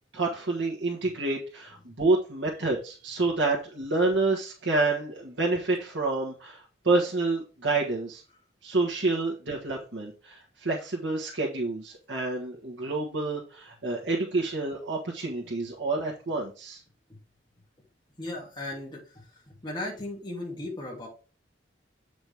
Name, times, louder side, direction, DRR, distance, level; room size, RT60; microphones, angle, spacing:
voice 1, 0.1-8.2 8.6-16.8, right 3 dB, 85° right, -3 dB, 1.6 m, -28 dB
voice 2, 18.2-21.1, left 1 dB, 25° left, -4 dB, 2.6 m, -37 dB
7.8 x 5.1 x 3.5 m, 0.35 s
head